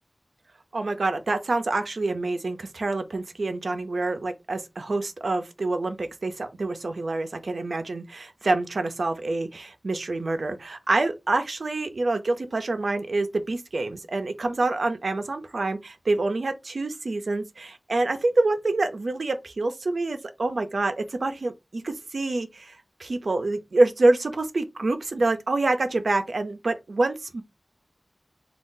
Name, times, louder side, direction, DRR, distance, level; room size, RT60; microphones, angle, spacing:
voice 1, 0.7-27.4, right 2 dB, 90° right, 0.4 m, -26 dB
2.6 x 2.3 x 3.6 m
wide cardioid pair, 45°, 0 cm